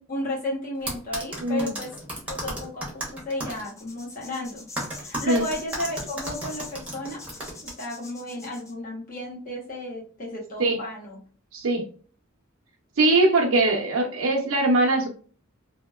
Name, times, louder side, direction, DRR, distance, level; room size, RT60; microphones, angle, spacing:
voice 1, 0.0-1.9 2.3-4.6 5.0-7.2 7.6-11.2, left 1 dB, 40° left, -5 dB, 1.4 m, -33 dB
sound 1, 0.9-3.6 4.8-7.7, right 1 dB, 5° right, 0.9 m, -33 dB
voice 2, 1.4-1.7 5.2-5.4 10.6-10.8 11.5-11.9 13.0-15.1, right 2 dB, 90° right, -1 dB, 0.6 m, -21 dB
sound 2, 3.5-8.7, left 3 dB, 15° left, 0.4 m, -43 dB
2.8 x 2.7 x 2.3 m, 0.40 s
head